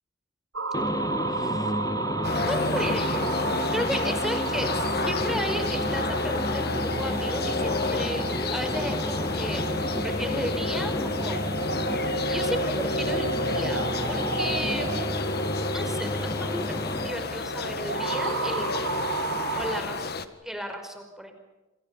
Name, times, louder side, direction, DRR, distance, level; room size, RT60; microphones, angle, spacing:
sound 1, 0.5-19.8, right 4 dB, 85° right, 2.3 m, -34 dB
sound 2, 0.7-17.1, left 1 dB, 20° left, 1.2 m, -32 dB
voice 1, 1.3-1.7 2.5-3.4 3.7-9.6 10.0-10.9 11.2-11.5 12.3-15.0 15.7-18.7 19.5-20.1 20.4-21.3, equal, ahead, 5 dB, 5.0 m, -34 dB
sound 3, 2.2-20.3, left 3 dB, 55° left, 1.7 m, -31 dB
29.5 x 27.0 x 5.6 m, 1.1 s
head